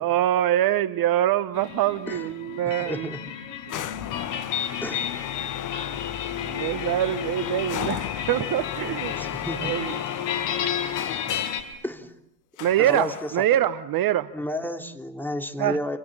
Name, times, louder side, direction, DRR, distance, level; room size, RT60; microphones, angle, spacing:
voice 1, 0.0-3.1 3.7-4.0 6.4-9.2 9.6-9.9 12.6-14.3 15.6-15.8, right 12 dB, 45° right, 15 dB, 1.0 m, -24 dB
sound 1, 1.5-11.6, left 8 dB, 60° left, 5.1 m, -33 dB
voice 2, 2.6-3.2 4.8-5.1 9.2-9.7 11.8-12.1 12.8-13.1 14.3-16.0, left 1 dB, 5° left, 4 dB, 3.2 m, -31 dB
sound 2, 3.7-11.7 12.6-13.5, left 11 dB, 35° left, 1.2 m, -33 dB
28.5 x 28.0 x 7.4 m, 0.78 s
hypercardioid pair, 75°, 50 cm